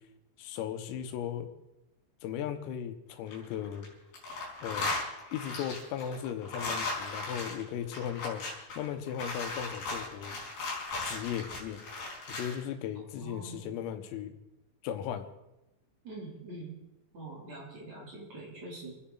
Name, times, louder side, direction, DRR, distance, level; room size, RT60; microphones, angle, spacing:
voice 1, 0.4-1.5 2.2-3.9 4.6-4.9 5.3-8.5 8.8-10.4 11.0-11.8 12.3-14.4 14.8-15.3, left 9 dB, 85° left, 7 dB, 3.8 m, -37 dB
sound 1, 3.1-3.9 4.1-12.6, left 3 dB, 45° left, 5.9 m, -37 dB
voice 2, 13.2-13.7 16.0-16.8 17.1-18.9, right 2 dB, 35° right, -4 dB, 4.1 m, -44 dB
28.5 x 10.0 x 4.0 m, 0.93 s
omnidirectional pair, 5.9 m